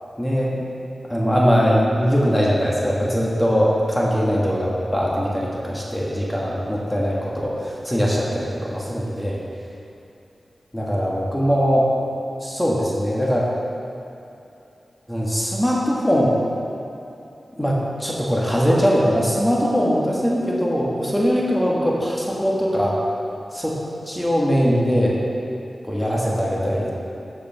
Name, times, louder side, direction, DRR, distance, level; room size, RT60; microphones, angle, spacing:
voice 1, 0.2-0.7 1.1-9.4 10.7-11.9 12.4-13.4 15.1-16.3 17.6-22.9 23.5-23.8 24.0-25.2 25.8-26.9, equal, 10° left, -5 dB, 1.7 m, -21 dB
14.0 x 5.1 x 3.6 m, 2.8 s
cardioid pair, 45°, 0 cm